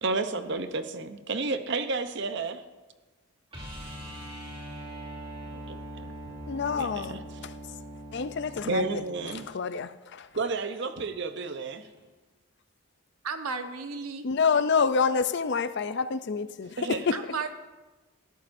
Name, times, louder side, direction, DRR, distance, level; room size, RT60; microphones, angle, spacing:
voice 1, 0.0-2.6 5.5-6.1 6.8-7.2 8.7-9.5 10.3-11.9 16.8-17.0, right 3 dB, 50° right, 0.8 m, -31 dB
sound 1, 3.5-9.5 12.0-12.1, equal, 25° right, 3.1 m, -41 dB
voice 2, 6.5-7.5 8.1-9.0 9.5-10.3 14.2-17.2, left 5 dB, 50° left, 0.5 m, -27 dB
voice 3, 13.2-14.2 17.1-17.5, right 5 dB, 85° right, 1.0 m, -33 dB
19.0 x 13.5 x 2.6 m
head